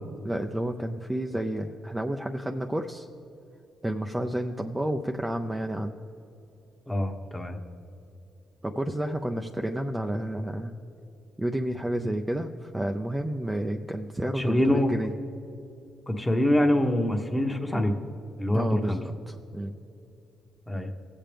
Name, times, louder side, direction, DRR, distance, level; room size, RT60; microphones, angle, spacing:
voice 1, 0.2-3.1 3.8-6.0 8.6-10.7 11.4-15.1 18.5-19.7, right 1 dB, 10° right, 3 dB, 0.5 m, -30 dB
voice 2, 6.9-7.6 14.4-14.9 16.1-17.9 18.4-19.0 20.7-20.9, left 1 dB, 10° left, 4 dB, 1.1 m, -25 dB
18.5 x 7.5 x 3.4 m, 2.9 s
cardioid pair, 90°, 0 cm